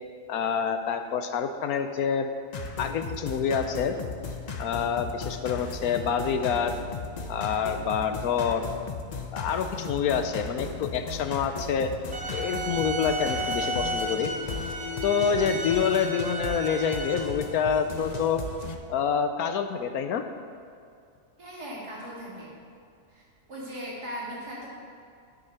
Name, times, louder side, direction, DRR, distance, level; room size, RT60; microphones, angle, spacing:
voice 1, 0.3-2.3 2.8-3.9 4.6-6.7 7.3-8.7 9.3-11.9 12.3-14.3 15.0-18.4 18.9-20.2, left 7 dB, 70° left, 8 dB, 1.0 m, -27 dB
sound 1, 2.5-18.8, left 4 dB, 45° left, 0.5 m, -36 dB
sound 2, 12.1-17.1, right 2 dB, 45° right, 1.1 m, -33 dB
voice 2, 21.4-22.5 23.1-24.7, equal, 75° right, -6 dB, 3.3 m, -38 dB
9.8 x 7.8 x 5.8 m, 2.4 s
omnidirectional pair, 1.7 m